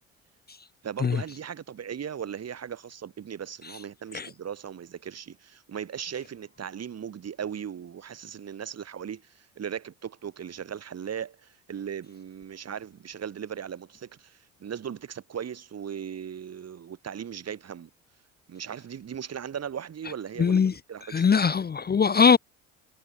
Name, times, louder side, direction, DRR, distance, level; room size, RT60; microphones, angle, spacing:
voice 1, 0.8-17.9 18.5-20.6 20.9-21.5, right 8 dB, 45° right, 4.9 m, -38 dB
voice 2, 20.4-20.7 21.1-22.4, left 6 dB, 25° left, 1.0 m, -21 dB
hypercardioid pair, 65°, 36 cm